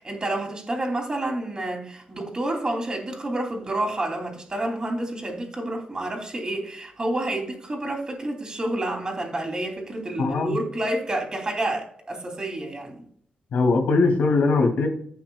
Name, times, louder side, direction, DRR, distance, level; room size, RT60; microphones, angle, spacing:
voice 1, 0.0-13.0, right 1 dB, 25° right, 2 dB, 2.7 m, -29 dB
voice 2, 10.2-10.6 13.5-14.9, left 3 dB, 75° left, 2 dB, 2.5 m, -20 dB
15.5 x 6.0 x 2.3 m, 0.62 s
cardioid pair, 100°, 3 cm